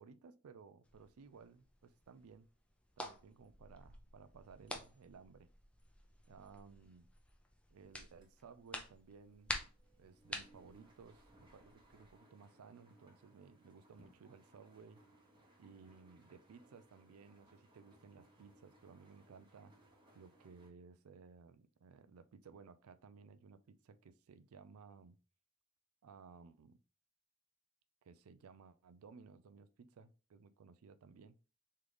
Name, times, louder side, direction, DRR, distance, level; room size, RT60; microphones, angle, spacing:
voice 1, 0.0-2.5 3.0-5.5 6.3-7.1 7.7-9.7 10.0-15.0 15.6-19.9 20.1-25.2 26.0-26.8 28.0-31.4, right 5 dB, 90° right, 0.4 m, -58 dB
sound 1, 0.8-12.1, left 1 dB, 5° left, 0.5 m, -50 dB
sound 2, 7.8-8.4 8.6-20.7, right 1 dB, 20° right, 1.0 m, -67 dB
3.8 x 3.2 x 3.2 m
head